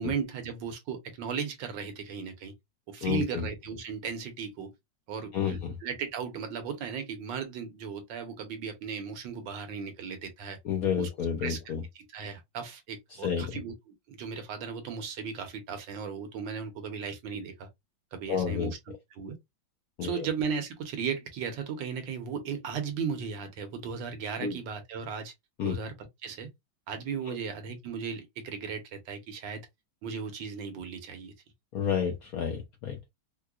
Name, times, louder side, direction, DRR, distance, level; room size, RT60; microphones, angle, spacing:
voice 1, 0.0-2.5 2.9-4.7 5.1-10.6 11.0-11.1 11.4-11.6 11.9-17.7 18.1-18.8 19.1-19.4 20.0-25.3 25.6-25.9 26.2-26.5 26.9-29.6 30.0-31.3, right 6 dB, 70° right, 1.4 m, -36 dB
voice 2, 3.0-3.5 5.3-5.8 10.6-11.8 13.1-13.6 18.3-19.0 20.0-20.3 24.4-24.6 25.6-25.7 27.3-27.4 31.7-33.1, left 7 dB, 70° left, 0.9 m, -30 dB
4.6 x 2.1 x 2.3 m
omnidirectional pair, 2.2 m